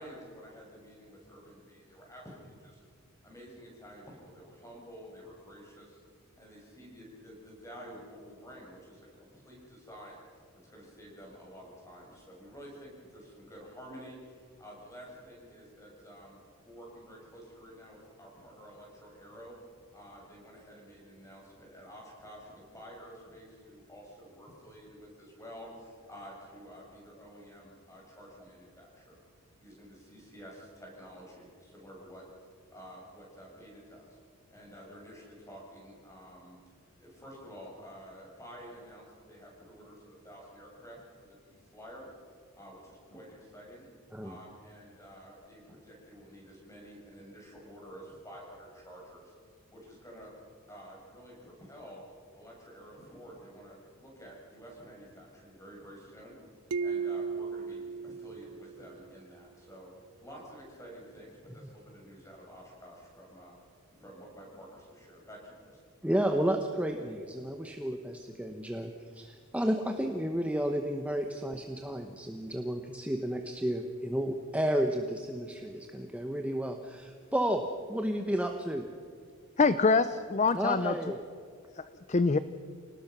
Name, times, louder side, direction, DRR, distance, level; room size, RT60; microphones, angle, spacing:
voice 1, 0.0-2.8 3.2-6.0 6.4-10.2 10.5-16.4 16.6-19.6 19.9-29.2 29.6-32.3 32.7-34.2 34.5-36.6 36.9-42.1 42.5-43.9 44.2-49.3 49.7-50.3 50.7-52.0 52.3-56.4 56.8-59.9 60.2-63.6 64.0-65.8, equal, 15° left, -2 dB, 7.1 m, -50 dB
sound 1, 56.7-59.3, right 5 dB, 85° right, 0.6 m, -36 dB
voice 2, 66.0-77.6 77.9-78.8 80.5-81.2, right 1 dB, 5° right, 4 dB, 1.0 m, -32 dB
voice 3, 79.6-81.0 81.8-82.4, left 4 dB, 30° left, 13 dB, 0.5 m, -25 dB
27.5 x 19.0 x 6.1 m, 2.3 s
head